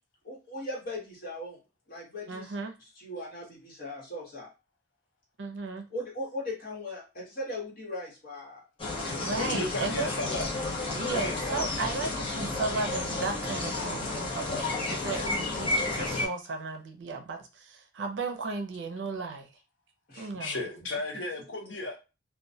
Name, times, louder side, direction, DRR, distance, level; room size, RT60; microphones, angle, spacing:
voice 1, 0.2-1.6 1.9-2.5 3.0-4.5 5.9-8.6 15.7-16.1 20.1-20.3, left 1 dB, 50° left, -4 dB, 1.1 m, -39 dB
voice 2, 2.3-2.7 5.4-5.9 9.2-10.1 10.9-19.5 20.2-20.6, right 3 dB, 75° right, 5 dB, 0.5 m, -35 dB
sound 1, 8.8-16.3, left 2 dB, 30° left, 0.6 m, -32 dB
voice 3, 9.4-10.5 10.9-11.7 15.2-15.3 20.4-22.0, left 2 dB, 85° left, 2 dB, 0.7 m, -35 dB
sound 2, 9.9-15.1, equal, 15° right, 0.5 m, -49 dB
2.2 x 2.1 x 2.6 m, 0.29 s
head